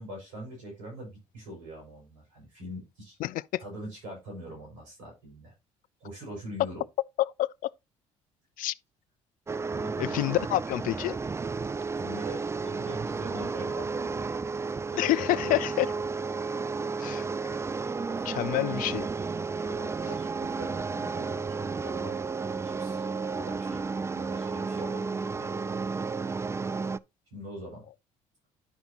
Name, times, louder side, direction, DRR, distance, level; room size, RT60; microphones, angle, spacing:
voice 1, 0.0-3.2 3.6-5.5 6.0-6.8 9.7-10.4 11.9-14.3 14.9-15.6 18.1-18.2 19.6-22.2 22.5-23.8 24.1-25.7 27.3-27.9, equal, 90° right, 5.9 m, -43 dB
voice 2, 3.2-3.6 7.2-7.5 8.6-8.7 10.0-11.2 15.0-15.9 17.0-17.3 18.2-19.1, left 16 dB, 60° left, 0.4 m, -27 dB
sound 1, 9.5-27.0, right 4 dB, 15° right, 0.4 m, -32 dB
11.0 x 5.2 x 2.8 m
hypercardioid pair, 55°, 16 cm